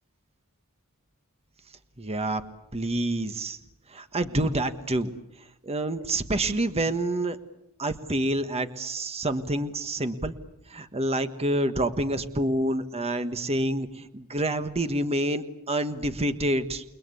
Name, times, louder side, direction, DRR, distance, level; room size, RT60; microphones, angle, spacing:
voice 1, 2.0-2.4 2.7-3.6 3.9-5.1 5.6-7.4 7.8-10.3 10.7-16.8, right 1 dB, 30° right, 9 dB, 1.4 m, -27 dB
30.0 x 20.0 x 8.4 m, 0.82 s
head